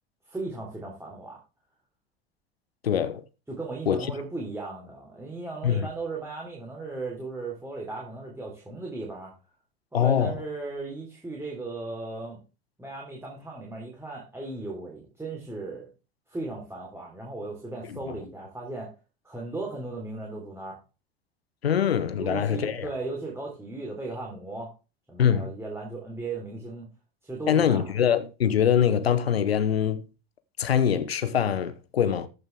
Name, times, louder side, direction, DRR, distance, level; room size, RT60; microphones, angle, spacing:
voice 1, 0.3-1.4 3.5-9.3 9.9-12.4 12.8-15.9 16.3-18.9 19.2-20.8 22.1-24.7 25.1-26.9 27.2-27.9, right 3 dB, 10° right, 4.0 m, -36 dB
voice 2, 2.8-3.2 3.9-4.1 5.6-5.9 9.9-10.3 17.9-18.1 21.6-22.9 25.2-25.5 27.5-30.1 30.6-32.3, left 8 dB, 85° left, 0.8 m, -24 dB
14.5 x 6.6 x 3.6 m
figure-of-eight pair, 75°, 30 cm